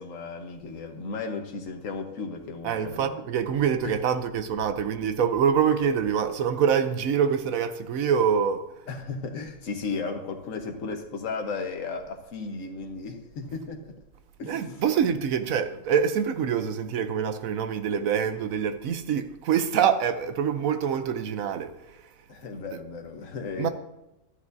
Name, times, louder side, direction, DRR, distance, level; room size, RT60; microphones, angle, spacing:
voice 1, 0.0-3.2 3.8-3.9 8.9-13.9 14.4-14.8 22.3-23.7, left 4 dB, 65° left, 1.5 m, -35 dB
voice 2, 2.6-8.6 14.4-21.7 22.7-22.8 23.6-23.7, right 7 dB, 75° right, 1.1 m, -25 dB
13.0 x 10.5 x 2.7 m
omnidirectional pair, 1.5 m